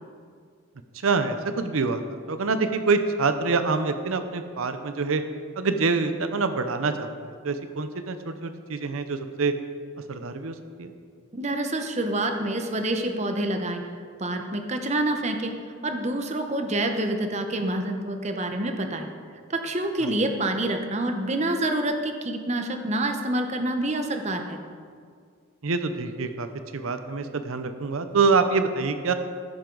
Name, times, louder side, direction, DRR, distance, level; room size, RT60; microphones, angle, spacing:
voice 1, 1.0-5.2 5.6-9.5 10.1-10.9 20.0-20.1 25.6-26.5 26.7-29.1, right 4 dB, 90° right, 9 dB, 0.7 m, -26 dB
voice 2, 11.3-13.8 14.2-15.5 15.8-19.1 19.5-24.6, right 1 dB, 35° right, 5 dB, 0.9 m, -27 dB
14.0 x 10.5 x 3.9 m, 2.1 s
head